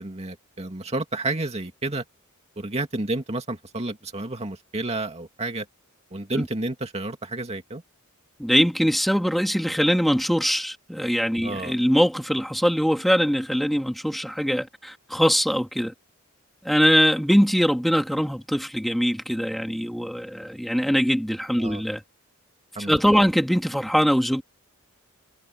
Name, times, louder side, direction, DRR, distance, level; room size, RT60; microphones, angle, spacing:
voice 1, 0.0-2.0 2.6-5.7 6.1-7.8 11.4-11.7 21.6-21.8 22.8-23.3, right 2 dB, 30° right, 2.3 m, -30 dB
voice 2, 8.4-15.9 16.6-22.0 22.9-24.4, equal, ahead, 2.6 m, -22 dB
head